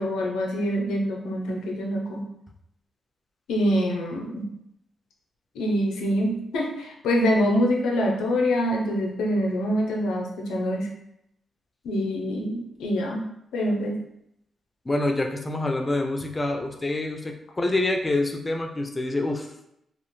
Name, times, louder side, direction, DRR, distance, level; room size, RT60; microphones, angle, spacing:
voice 1, 0.0-2.3 3.5-4.5 5.5-10.9 11.8-13.2 13.5-14.0, equal, 90° left, 0 dB, 0.5 m, -25 dB
voice 2, 14.9-19.5, left 2 dB, 25° left, 4 dB, 0.4 m, -26 dB
2.4 x 2.1 x 3.0 m, 0.78 s
cardioid pair, 60°, 0 cm